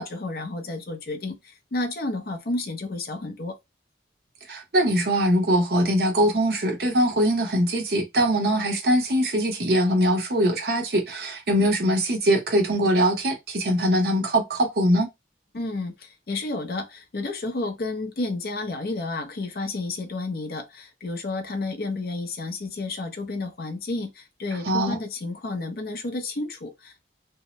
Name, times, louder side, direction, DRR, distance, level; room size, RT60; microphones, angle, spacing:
voice 1, 0.0-3.6 15.5-27.1, left 2 dB, 55° left, 0.5 m, -31 dB
voice 2, 4.5-15.1 24.6-25.0, equal, 55° right, 0.8 m, -22 dB
2.7 x 2.0 x 2.9 m
head